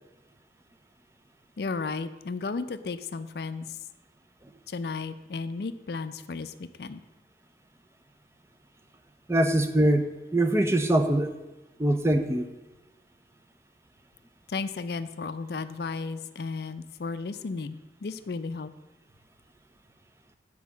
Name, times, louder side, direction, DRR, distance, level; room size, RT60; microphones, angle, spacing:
voice 1, 1.6-3.8 4.7-7.0 14.5-18.7, left 4 dB, 65° left, 12 dB, 0.4 m, -34 dB
voice 2, 9.3-11.3 11.8-12.5, right 1 dB, 15° right, 7 dB, 0.5 m, -23 dB
7.5 x 4.7 x 7.0 m, 1.1 s
head